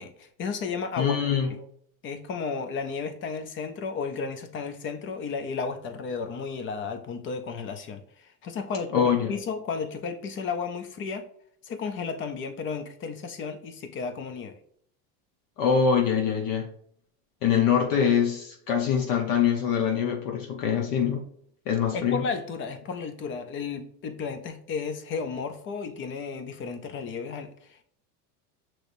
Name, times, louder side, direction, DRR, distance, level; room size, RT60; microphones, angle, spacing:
voice 1, 0.0-1.4 2.0-11.3 11.6-14.6 21.9-27.8, left 5 dB, 25° left, 8 dB, 0.5 m, -33 dB
voice 2, 1.0-1.5 8.9-9.3 15.6-16.7 17.4-21.2 21.7-22.3, left 7 dB, 45° left, 3 dB, 0.9 m, -24 dB
6.3 x 3.0 x 2.6 m, 0.64 s
supercardioid pair, 120°, 47 cm